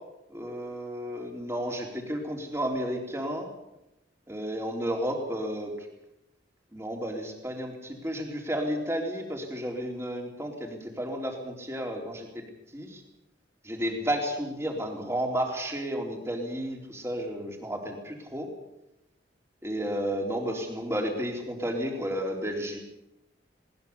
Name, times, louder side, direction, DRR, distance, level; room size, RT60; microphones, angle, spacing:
voice 1, 0.3-3.5 4.3-5.9 6.7-12.4 12.7-13.0 13.6-18.5 19.6-22.8, equal, 15° right, 2 dB, 3.8 m, -32 dB
21.0 x 19.5 x 7.1 m, 0.90 s
head